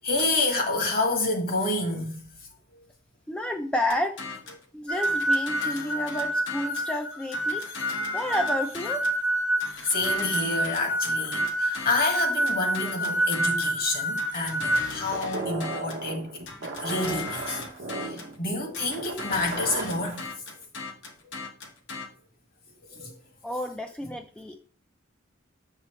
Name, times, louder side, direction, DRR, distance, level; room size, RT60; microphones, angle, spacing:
voice 1, 0.0-2.2 9.8-17.6 18.0-20.4 22.9-23.2, left 2 dB, 50° left, 1.7 m, -28 dB
voice 2, 3.3-4.2 4.7-7.6 8.1-9.0 23.4-24.6, left 1 dB, 5° left, 0.4 m, -30 dB
sound 1, 3.9-4.6 5.0-6.9 7.3-9.2 9.6-13.8 14.2-16.1 16.5-18.4 18.7-22.1, left 4 dB, 65° left, 1.3 m, -38 dB
sound 2, 4.9-14.9, right 1 dB, 85° left, 1.3 m, -28 dB
sound 3, 15.1-20.3, right 3 dB, 75° right, 1.0 m, -36 dB
7.2 x 5.6 x 3.1 m
head